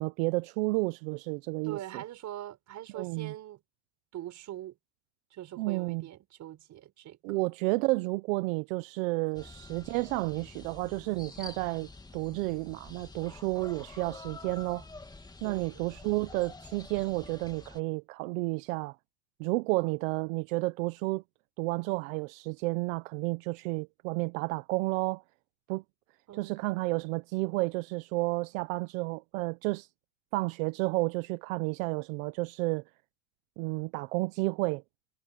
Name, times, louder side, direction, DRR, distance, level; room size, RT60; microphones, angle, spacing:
voice 1, 0.0-2.0 2.9-3.3 5.6-6.0 7.2-14.8 15.4-18.9 19.4-21.2 21.6-25.2 25.7-25.8 26.4-29.9 30.3-32.8 33.6-34.8, right 24 dB, 65° right, 1.1 m, -31 dB
voice 2, 1.6-3.6 4.1-4.8 5.3-7.4 15.4-15.8 26.3-26.6, right 13 dB, 40° right, 5.5 m, -43 dB
sound 1, 9.3-17.8, left 3 dB, 10° left, 2.3 m, -48 dB
supercardioid pair, 125°, 43 cm